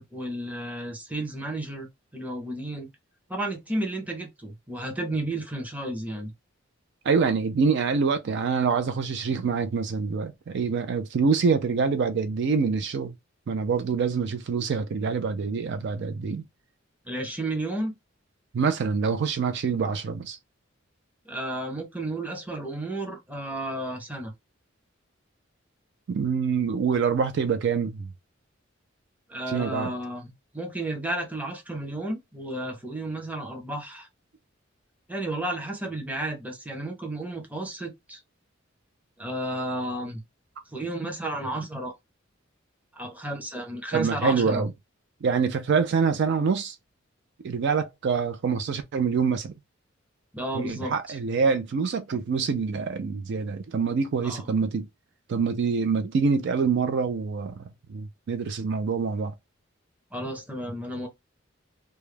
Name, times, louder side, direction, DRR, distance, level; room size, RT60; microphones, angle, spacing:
voice 1, 0.0-1.9 2.1-2.9 3.3-6.3 17.1-17.9 21.3-24.3 29.3-34.1 35.1-38.2 39.2-40.2 40.7-41.9 42.9-44.6 50.3-50.9 54.2-54.4 60.1-61.1, right 1 dB, 10° right, 0.6 m, -32 dB
voice 2, 7.0-13.1 13.5-16.4 18.5-20.4 26.1-28.1 29.5-29.9 43.9-44.7 45.2-46.8 47.4-49.6 50.5-54.9 55.3-59.3, right 5 dB, 60° right, 0.4 m, -25 dB
2.3 x 2.0 x 3.1 m
head